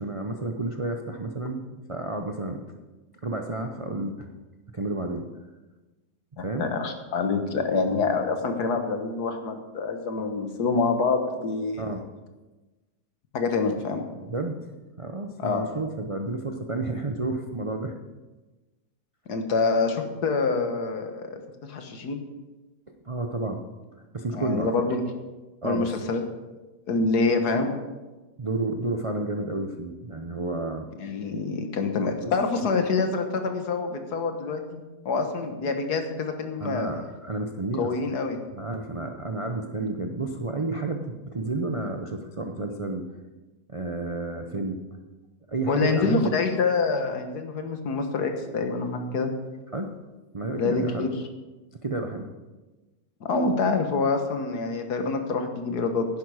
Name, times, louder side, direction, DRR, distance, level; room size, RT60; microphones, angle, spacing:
voice 1, 0.0-2.6 3.2-4.3 4.7-5.3 6.4-6.7 11.8-12.0 14.2-14.6 15.0-17.9 23.1-23.6 24.1-24.7 25.6-26.0 28.4-30.9 32.2-32.3 32.7-32.8 36.6-38.0 38.5-43.1 43.7-44.8 45.5-46.3 49.7-49.9 50.3-51.1 51.8-52.3, right 2 dB, 40° right, 4 dB, 0.4 m, -31 dB
voice 2, 6.4-11.9 13.3-14.1 15.4-15.6 19.3-22.2 24.3-25.0 25.6-26.2 26.9-27.8 31.0-36.9 37.8-38.4 45.7-49.3 50.6-51.1 53.3-56.1, left 4 dB, 75° left, 6 dB, 1.8 m, -26 dB
10.5 x 10.5 x 4.8 m, 1.2 s
omnidirectional pair, 1.7 m